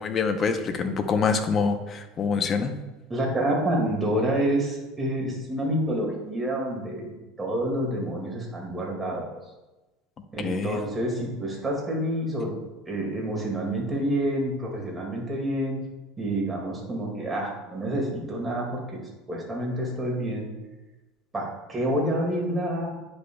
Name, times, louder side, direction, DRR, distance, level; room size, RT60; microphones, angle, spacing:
voice 1, 0.0-2.8 10.4-10.8, left 5 dB, 35° left, 8 dB, 0.7 m, -25 dB
voice 2, 3.1-9.3 10.3-12.5 12.9-15.8 16.2-20.5 21.3-23.0, right 1 dB, 15° right, -2 dB, 2.1 m, -28 dB
9.8 x 5.3 x 2.3 m, 1.1 s
supercardioid pair, 115°, 0 cm